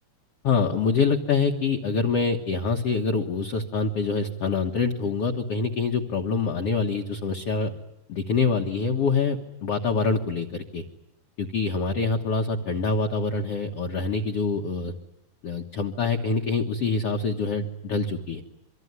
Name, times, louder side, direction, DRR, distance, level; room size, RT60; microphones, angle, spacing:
voice 1, 0.4-7.7 8.1-10.8 11.4-14.9 15.4-18.4, left 4 dB, 55° left, 3 dB, 1.8 m, -25 dB
25.0 x 24.5 x 9.8 m, 0.85 s
omnidirectional pair, 4.7 m